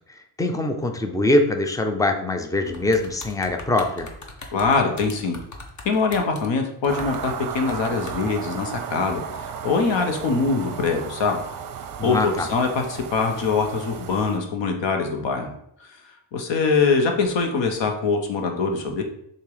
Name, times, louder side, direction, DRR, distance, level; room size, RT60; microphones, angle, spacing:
voice 1, 0.4-4.1 12.0-12.5, left 2 dB, 5° left, 5 dB, 0.5 m, -23 dB
sound 1, 2.6-6.5 6.8-8.2, left 2 dB, 35° left, 1.1 m, -39 dB
voice 2, 4.5-5.4 5.8-11.4 12.0-15.6 16.3-19.0, left 4 dB, 60° left, 4 dB, 1.3 m, -23 dB
sound 2, 6.9-14.4, right 7 dB, 45° right, 0.7 m, -35 dB
6.8 x 2.8 x 5.0 m, 0.74 s
cardioid pair, 130°, 49 cm